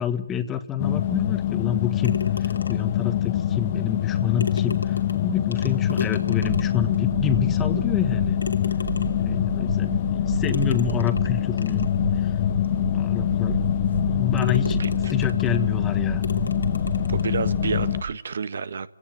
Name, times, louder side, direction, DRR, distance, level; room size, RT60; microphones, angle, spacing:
voice 1, 0.0-8.4 9.2-11.9 12.2-12.3 12.8-13.6 14.1-14.8 15.1-16.2, left 8 dB, 10° left, 10 dB, 1.5 m, -28 dB
sound 1, 0.8-18.0, left 11 dB, 35° left, 1.1 m, -24 dB
sound 2, 2.0-3.0 4.0-4.1 4.4-6.9 7.5-7.6 8.4-9.3 10.4-12.0 12.6-12.7 13.3-13.4 13.9-14.1 14.4-15.7 16.2-17.4, left 4 dB, 80° left, 2.9 m, -36 dB
sound 3, 6.4-18.1, right 5 dB, 30° right, 1.3 m, -33 dB
voice 2, 17.1-18.9, right 5 dB, 60° right, 15 dB, 1.4 m, -29 dB
29.5 x 17.5 x 9.1 m, 0.81 s
hypercardioid pair, 155°, 0 cm